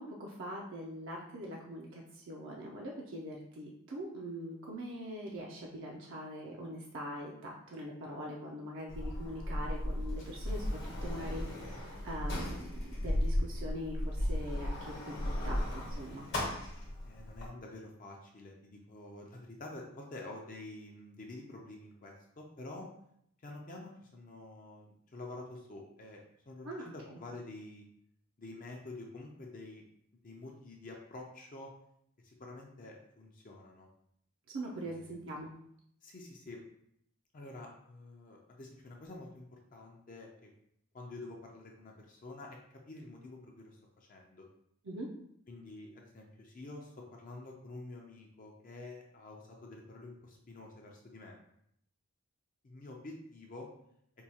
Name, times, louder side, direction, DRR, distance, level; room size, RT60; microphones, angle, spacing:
voice 1, 0.0-12.7 13.0-16.3 26.6-27.2 34.5-35.5 44.8-45.1, equal, 55° right, -2 dB, 0.5 m, -43 dB
Sliding door, 8.9-17.5, left 1 dB, 55° left, 1.0 m, -36 dB
voice 2, 17.0-22.9 23.4-26.2 26.5-27.8 28.4-29.8 30.2-31.7 32.2-33.9 34.7-35.2 36.0-36.6 37.3-40.5 40.9-44.5 45.5-51.4 52.6-53.7, left 2 dB, 35° left, 0 dB, 0.5 m, -48 dB
4.5 x 2.3 x 2.8 m, 0.72 s
head